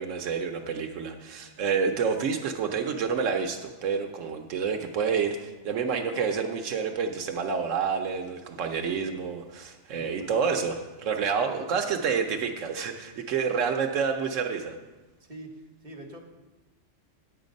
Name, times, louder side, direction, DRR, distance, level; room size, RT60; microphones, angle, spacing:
voice 1, 0.0-14.8, right 6 dB, 85° right, 4 dB, 1.1 m, -28 dB
voice 2, 9.9-10.4 11.4-12.0 15.2-16.2, right 1 dB, 40° right, 1 dB, 1.5 m, -45 dB
9.8 x 8.1 x 5.2 m, 1.2 s
omnidirectional pair, 1.3 m